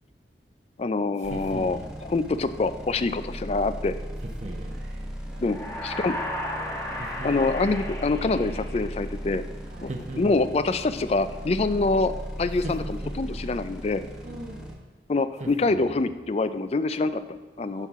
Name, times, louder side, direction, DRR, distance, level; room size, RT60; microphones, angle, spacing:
voice 1, 0.8-3.9 5.4-6.1 7.2-9.4 9.8-9.9 10.2-12.1 12.4-14.0 15.1-17.9, left 3 dB, 35° left, 12 dB, 0.4 m, -25 dB
sound 1, 1.2-14.7, equal, 5° right, 1.2 m, -37 dB
sound 2, 1.2-2.0 4.2-4.8 7.0-7.8 9.9-10.8 12.6-13.6 15.4-16.2, right 1 dB, 40° right, 0.8 m, -38 dB
voice 2, 4.7-6.1 9.6-10.0 14.2-14.8 17.7-17.9, right 1 dB, 70° right, 2 dB, 1.1 m, -47 dB
sound 3, 5.4-9.3, left 1 dB, 20° left, 1.4 m, -34 dB
12.0 x 5.6 x 3.6 m, 1.3 s
head